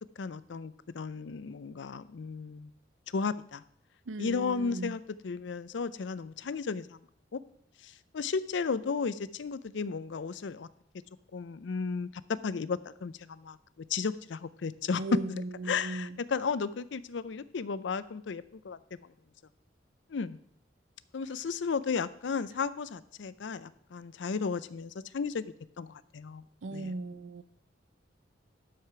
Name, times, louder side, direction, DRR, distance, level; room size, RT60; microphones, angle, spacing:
voice 1, 0.2-2.7 3.1-3.6 4.2-7.0 7.3-7.4 7.8-10.7 11.3-13.6 13.9-15.0 15.7-18.8 20.1-20.4 21.1-26.4 26.7-26.9, left 5 dB, 70° left, 0.5 m, -34 dB
voice 2, 4.1-5.0 15.0-16.2 26.6-27.4, right 2 dB, 85° right, 0.5 m, -37 dB
12.0 x 5.0 x 5.7 m
head